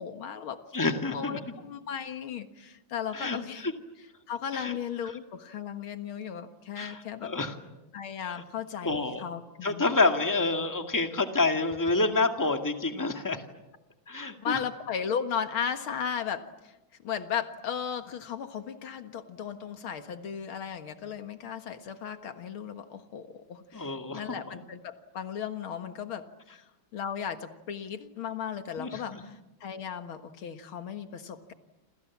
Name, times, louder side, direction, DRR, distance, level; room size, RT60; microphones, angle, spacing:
voice 1, 0.0-0.6 1.1-3.7 4.3-7.3 7.9-9.8 14.4-16.7 17.0-26.3 26.5-26.6 26.9-31.5, left 7 dB, 85° left, 8 dB, 2.4 m, -36 dB
voice 2, 0.7-1.4 3.1-3.7 4.5-4.7 6.8-7.5 8.3-8.4 8.8-9.2 9.6-13.4 14.1-14.6 23.7-24.2 28.8-29.2, left 3 dB, 10° left, 5 dB, 1.9 m, -28 dB
28.5 x 28.0 x 7.3 m, 1.0 s
omnidirectional pair, 2.2 m